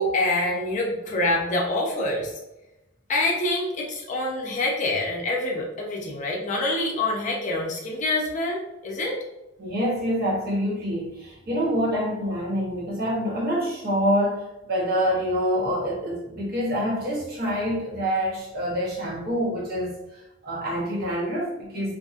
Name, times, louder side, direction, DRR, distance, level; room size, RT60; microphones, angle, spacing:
voice 1, 0.0-2.3 3.1-9.2, left 2 dB, 40° left, -1 dB, 0.5 m, -26 dB
voice 2, 9.6-14.4 14.7-19.9 20.4-22.0, equal, 50° right, -4 dB, 0.9 m, -26 dB
2.6 x 2.5 x 2.4 m, 0.93 s
head